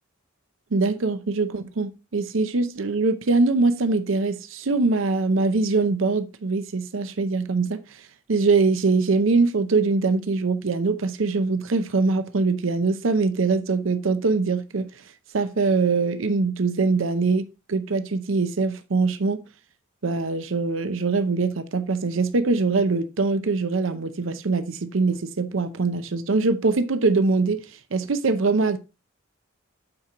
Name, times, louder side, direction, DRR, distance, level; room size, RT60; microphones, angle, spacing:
voice 1, 0.7-7.8 8.3-14.9 15.3-19.4 20.0-28.8, right 3 dB, 70° right, 0.7 m, -23 dB
8.8 x 4.5 x 3.7 m
head